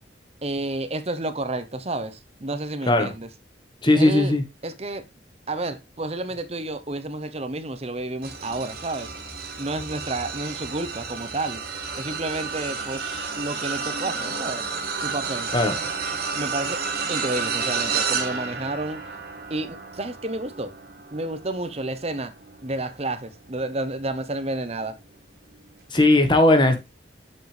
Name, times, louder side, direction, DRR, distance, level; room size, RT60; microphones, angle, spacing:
voice 1, 0.4-3.3 3.9-4.3 4.6-5.0 5.5-9.1 9.6-11.6 11.9-14.7 15.0-15.5 16.3-16.8 17.1-19.0 19.5-20.7 21.1-22.3 22.6-25.0, right 2 dB, 35° right, 1.0 m, -30 dB
voice 2, 3.8-4.4 15.5-15.7 25.9-26.8, left 2 dB, 25° left, 1.4 m, -17 dB
sound 1, 8.2-23.7 24.2-24.5 25.8-25.9, right 5 dB, 55° right, 2.4 m, -31 dB
7.5 x 6.7 x 3.3 m
head